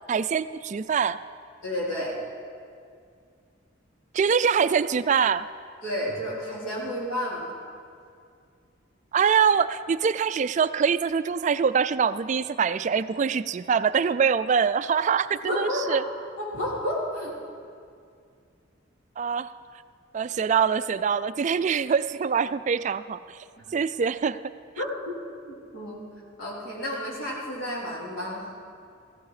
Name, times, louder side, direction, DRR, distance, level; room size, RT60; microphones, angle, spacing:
voice 1, 0.1-1.2 4.1-5.5 9.1-16.0 19.2-19.5 20.1-23.4 23.7-24.5, right 6 dB, 40° right, 14 dB, 0.3 m, -24 dB
voice 2, 1.6-2.1 5.8-7.6 15.4-16.0 16.4-17.3 23.6-23.7 24.8-25.1 25.5-26.0 26.4-28.5, equal, 90° left, -5 dB, 3.9 m, -31 dB
15.5 x 14.5 x 4.9 m, 2.3 s
head